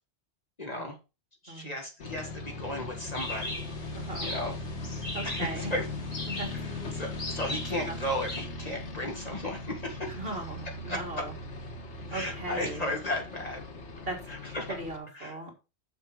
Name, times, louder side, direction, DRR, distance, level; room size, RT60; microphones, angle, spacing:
voice 1, 0.6-1.0 1.4-3.6 4.2-4.6 5.2-5.9 6.5-10.2 10.9-11.3 12.1-13.6 14.3-14.8 15.1-15.4, left 1 dB, 35° left, 1 dB, 1.8 m, -35 dB
sound 1, 2.0-15.0, left 2 dB, 85° left, 1.7 m, -39 dB
sound 2, 3.1-8.5, left 1 dB, 70° left, 3.0 m, -39 dB
voice 2, 3.9-4.3 5.1-5.7 6.3-6.5 7.9-8.0 10.2-11.3 12.1-12.9 14.1-14.2 14.7-15.5, right 2 dB, 55° right, 3 dB, 2.3 m, -38 dB
6.7 x 6.4 x 4.9 m, 0.29 s
omnidirectional pair, 1.1 m